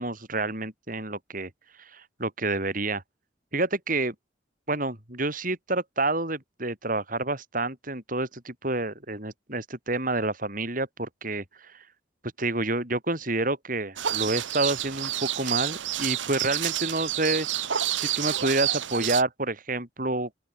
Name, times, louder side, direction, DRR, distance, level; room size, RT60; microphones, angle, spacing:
voice 1, 0.0-1.5 1.8-3.0 3.5-4.1 4.7-11.8 12.4-17.5 18.0-20.3, right 2 dB, 45° right, 7.7 m, -29 dB
sound 1, 14.0-19.2, right 12 dB, 90° right, 1.2 m, -29 dB
open air
head